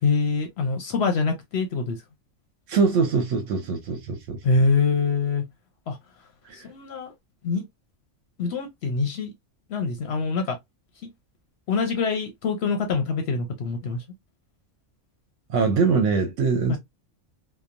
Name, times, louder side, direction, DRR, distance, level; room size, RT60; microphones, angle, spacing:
voice 1, 0.0-2.0 4.4-5.4 5.9-6.0 6.5-7.1 7.4-7.6 8.4-9.3 9.7-10.6 11.7-14.0 16.7-16.8, left 4 dB, 65° left, 0.8 m, -24 dB
voice 2, 2.7-4.4 6.4-6.7 15.5-16.8, right 5 dB, 85° right, 1.0 m, -23 dB
2.9 x 2.1 x 2.4 m
omnidirectional pair, 1.3 m